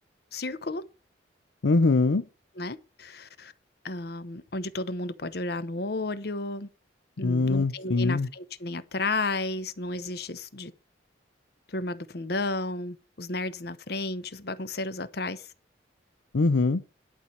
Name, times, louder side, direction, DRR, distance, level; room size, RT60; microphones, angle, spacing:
voice 1, 0.3-0.8 2.6-3.5 3.8-6.7 7.2-10.7 11.7-15.5, left 2 dB, 55° left, 0.9 m, -33 dB
voice 2, 1.6-2.2 7.2-8.3 16.3-16.8, left 3 dB, 80° left, 0.6 m, -23 dB
11.5 x 4.6 x 7.3 m
head